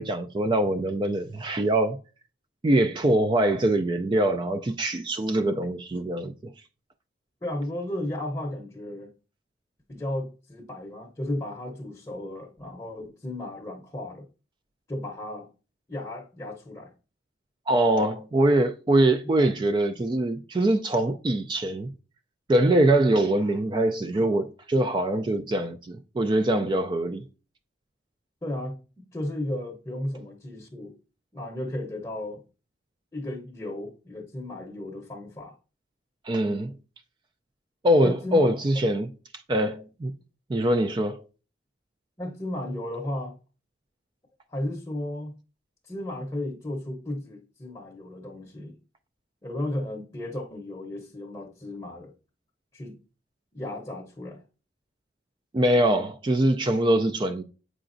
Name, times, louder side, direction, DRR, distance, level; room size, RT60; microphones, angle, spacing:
voice 1, 0.0-2.0 2.6-6.5 17.7-21.9 22.5-27.3 36.2-36.7 37.8-39.1 39.5-40.1 40.5-41.2 55.5-57.4, right 1 dB, 25° right, 0.3 m, -23 dB
voice 2, 7.4-9.1 9.9-14.2 14.9-15.5 15.9-16.9 19.4-19.5 28.4-30.9 31.3-32.4 33.1-35.5 38.0-38.4 42.2-43.4 44.5-45.3 45.8-48.8 49.4-52.1 52.7-53.0 53.5-54.4, left 1 dB, 20° left, 0.7 m, -34 dB
7.7 x 4.9 x 2.5 m
head